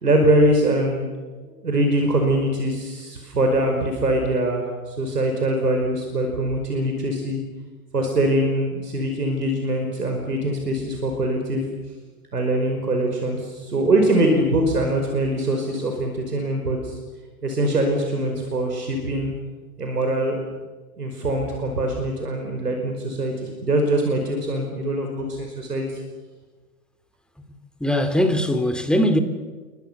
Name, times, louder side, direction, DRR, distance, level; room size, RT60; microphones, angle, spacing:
voice 1, 0.0-1.1 1.6-7.4 7.9-11.7 12.3-17.0 17.4-19.3 19.8-20.5 21.0-23.3 23.6-25.8, right 1 dB, 85° right, 5.3 m, -23 dB
voice 2, 27.5-29.2, equal, ahead, 2.7 m, -21 dB
29.5 x 24.5 x 6.9 m
figure-of-eight pair, 100°, 46 cm